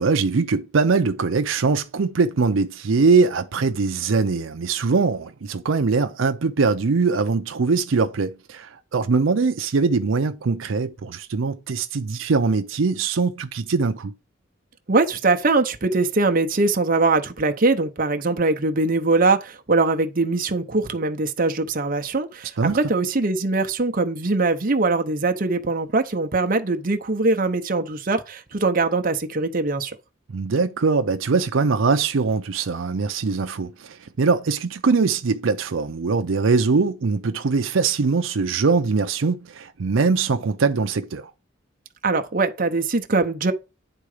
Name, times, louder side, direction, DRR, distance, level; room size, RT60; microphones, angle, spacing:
voice 1, 0.0-14.1 22.6-22.8 30.3-41.3, right 4 dB, 80° right, 0.6 m, -22 dB
voice 2, 14.9-30.0 42.0-43.5, right 3 dB, 45° right, 0.8 m, -22 dB
9.9 x 3.8 x 4.9 m
head